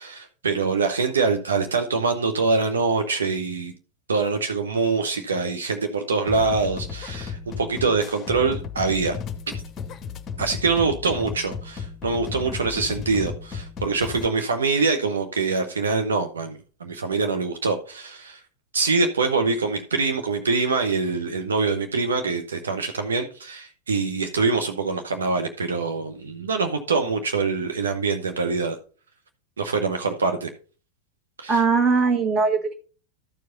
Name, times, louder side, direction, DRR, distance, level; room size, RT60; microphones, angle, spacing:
voice 1, 0.0-3.7 4.1-9.2 10.4-18.4 18.7-28.8 29.6-30.5 31.4-31.6, right 4 dB, 70° right, 5 dB, 1.0 m, -24 dB
sound 1, 6.3-14.3, left 6 dB, 30° left, 0.8 m, -34 dB
voice 2, 31.5-32.7, right 4 dB, 30° right, 5 dB, 1.7 m, -20 dB
13.5 x 4.8 x 4.0 m, 0.38 s
figure-of-eight pair, 90°, 0 cm